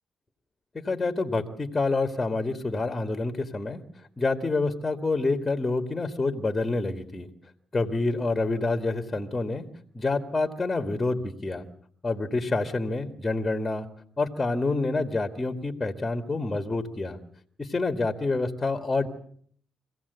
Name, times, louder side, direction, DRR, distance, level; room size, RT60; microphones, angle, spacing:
voice 1, 0.7-3.8 4.2-7.3 7.7-9.7 9.9-11.7 12.0-13.9 14.2-17.2 17.6-19.1, left 3 dB, 20° left, 5 dB, 2.1 m, -27 dB
25.0 x 16.5 x 8.3 m, 0.62 s
cardioid pair, 90°, 0 cm